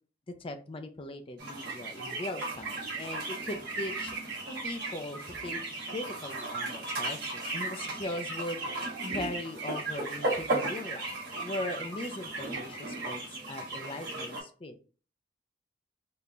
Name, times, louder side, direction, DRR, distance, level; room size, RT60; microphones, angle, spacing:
voice 1, 0.4-4.2 4.6-5.6 5.9-8.6 9.1-14.8, left 1 dB, 30° left, 7 dB, 0.4 m, -39 dB
sound 1, 1.4-14.4, right 2 dB, 55° right, 1.3 m, -35 dB
3.7 x 2.8 x 2.4 m, 0.38 s
head